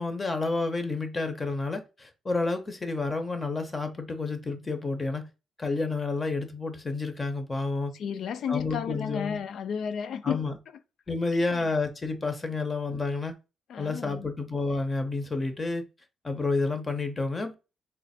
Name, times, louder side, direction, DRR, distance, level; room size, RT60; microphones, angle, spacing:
voice 1, 0.0-5.3 5.6-7.9 8.5-9.4 10.2-10.5 11.1-13.3 13.8-15.8 16.2-17.5, left 3 dB, 25° left, 0.7 m, -30 dB
voice 2, 7.9-10.5 11.5-11.7 13.7-14.3, left 7 dB, 70° left, 0.4 m, -33 dB
3.2 x 2.0 x 4.1 m
cardioid pair, 90°, 0 cm